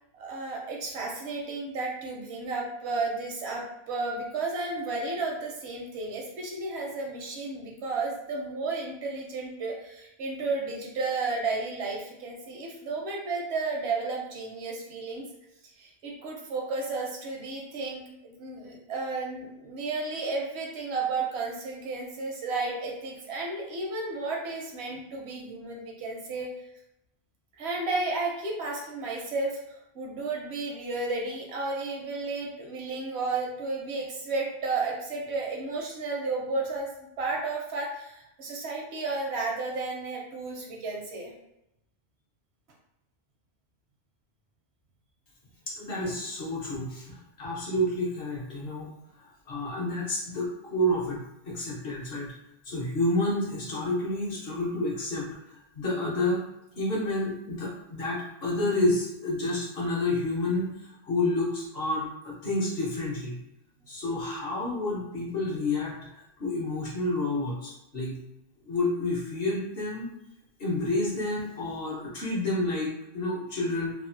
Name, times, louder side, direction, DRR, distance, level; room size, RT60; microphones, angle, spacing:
voice 1, 0.1-15.3 15.8-26.5 27.6-41.3, right 3 dB, 85° right, 0 dB, 1.0 m, -33 dB
voice 2, 45.7-48.9 49.5-52.3 52.6-55.3 55.7-56.4 56.8-63.4 63.9-65.9 66.4-68.2 68.7-70.1 70.6-73.9, left 1 dB, 65° left, -4 dB, 1.1 m, -29 dB
3.2 x 2.1 x 2.5 m, 0.86 s
omnidirectional pair, 1.1 m